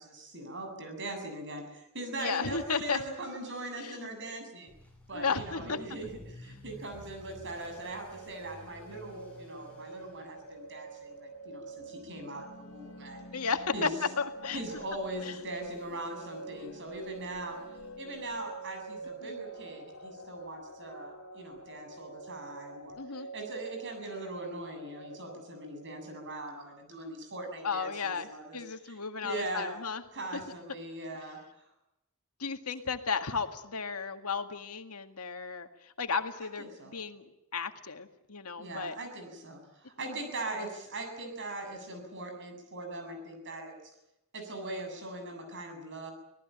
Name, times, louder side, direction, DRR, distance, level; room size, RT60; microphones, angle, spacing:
voice 1, 0.0-4.7 5.1-13.3 13.7-13.9 14.5-17.6 18.0-23.0 23.3-29.8 30.1-31.4 36.6-36.9 38.6-43.9 44.3-46.1, right 2 dB, 55° right, 5 dB, 7.5 m, -41 dB
voice 2, 2.2-3.0 3.8-4.1 5.1-5.8 13.3-14.6 15.2-15.3 19.2-19.4 23.0-23.3 27.6-30.0 32.4-35.7 36.0-37.3 37.5-39.0 40.0-40.2, left 5 dB, 90° left, 6 dB, 2.0 m, -34 dB
Motor vehicle (road) / Accelerating revving vroom, 4.7-19.5 19.8-20.2 20.7-20.8 21.1-21.2 21.5-21.6 22.9-23.0, left 1 dB, 5° left, 6.9 m, -56 dB
sound 1, 7.4-26.6, right 2 dB, 75° left, 2.9 m, -47 dB
25.5 x 18.0 x 9.0 m, 0.91 s
head